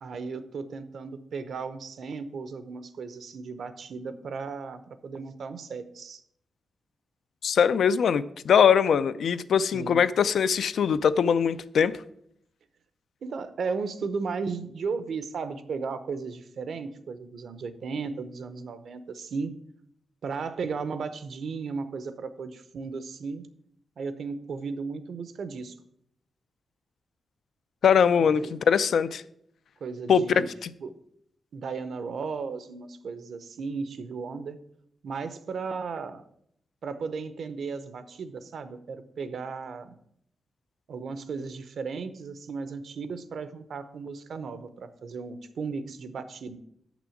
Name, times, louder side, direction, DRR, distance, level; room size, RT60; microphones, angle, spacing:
voice 1, 0.0-6.2 9.7-10.1 13.2-19.5 20.2-23.5 24.0-25.8 28.2-28.6 29.8-30.5 30.8-30.9 31.5-34.6 35.0-36.2 36.8-40.0 40.9-46.6, right 5 dB, 65° right, 0.7 m, -35 dB
voice 2, 7.4-11.9 27.8-29.2 30.1-30.7, left 7 dB, 75° left, 0.4 m, -22 dB
6.9 x 6.1 x 7.0 m
wide cardioid pair, 160°, 0 cm